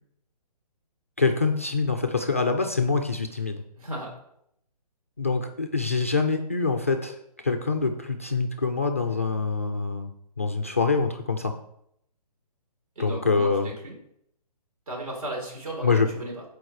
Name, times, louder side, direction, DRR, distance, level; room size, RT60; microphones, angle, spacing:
voice 1, 1.2-3.6 5.2-7.2 7.4-11.5 13.0-13.7 15.8-16.1, left 4 dB, 20° left, 5 dB, 0.4 m, -25 dB
voice 2, 3.8-4.1 13.0-14.0 14.9-16.4, right 1 dB, 60° right, 0 dB, 4.4 m, -35 dB
13.0 x 4.8 x 4.7 m, 0.76 s
hypercardioid pair, 170°, 21 cm